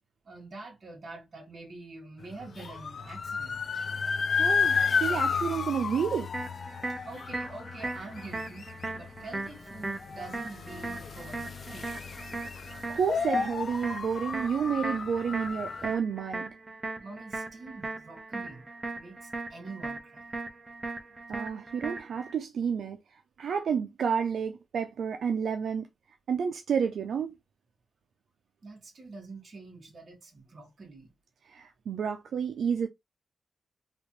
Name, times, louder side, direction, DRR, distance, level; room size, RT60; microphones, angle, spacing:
voice 1, 0.2-3.6 7.1-11.9 17.0-20.2 28.6-31.1, right 3 dB, 50° right, 2.1 m, -46 dB
sound 1, 2.3-15.9, left 5 dB, 55° left, 0.5 m, -32 dB
voice 2, 4.4-6.5 12.9-16.5 21.3-23.0 23.4-25.9 26.3-27.3 31.5-32.9, right 7 dB, 80° right, 0.5 m, -30 dB
sound 2, 6.3-22.3, right 3 dB, 25° right, 1.0 m, -39 dB
4.1 x 2.9 x 3.0 m
wide cardioid pair, 115°, 0 cm